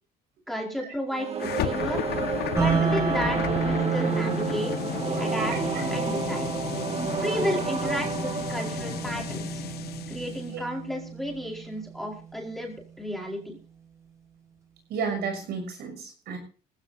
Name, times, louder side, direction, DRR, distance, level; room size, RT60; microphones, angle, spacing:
voice 1, 0.5-2.0 2.5-4.7 5.2-5.6 5.8-6.5 7.2-9.6 10.1-13.6, equal, ahead, 0 dB, 4.6 m, -33 dB
sound 1, 1.1-10.0, right 6 dB, 35° right, 1.9 m, -32 dB
sound 2, 1.4-10.5, left 12 dB, 70° left, 1.1 m, -33 dB
sound 3, 2.6-12.6, right 6 dB, 15° right, 7.6 m, -32 dB
voice 2, 5.5-5.8 14.9-16.4, right 5 dB, 75° right, 5 dB, 6.4 m, -32 dB
20.0 x 16.0 x 2.7 m, 0.38 s
cardioid pair, 110°, 17 cm